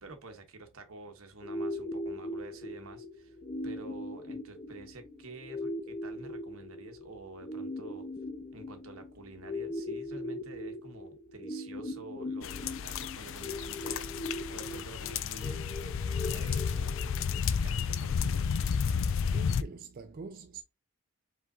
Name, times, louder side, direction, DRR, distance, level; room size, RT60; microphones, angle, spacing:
voice 1, 0.0-3.4 3.6-8.0 8.5-15.7 16.3-17.0 17.5-18.5, right 3 dB, 80° right, 1.2 m, -49 dB
sound 1, 1.4-17.4, left 1 dB, 30° left, 0.7 m, -40 dB
sound 2, 12.4-19.6, left 6 dB, 65° left, 0.4 m, -32 dB
voice 2, 18.9-20.6, right 4 dB, 45° right, 0.4 m, -46 dB
5.0 x 3.8 x 2.8 m
head